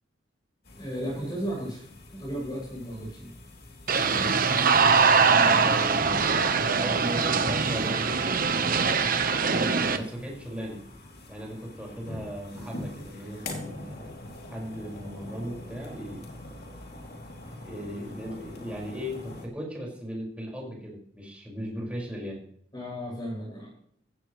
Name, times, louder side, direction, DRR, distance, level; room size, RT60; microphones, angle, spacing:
sound 1, 0.6-19.5, left 2 dB, 60° left, 3.2 m, -44 dB
voice 1, 0.8-1.8 2.1-3.3 4.1-4.3 5.2-5.7 22.7-23.7, equal, 25° left, -4 dB, 7.4 m, -35 dB
sound 2, 3.9-10.0, right 5 dB, 50° right, 1.1 m, -22 dB
voice 2, 5.3-10.8 11.3-14.1 14.5-16.3 17.6-22.4, equal, 5° right, -3 dB, 5.6 m, -37 dB
15.5 x 15.5 x 3.3 m, 0.64 s
head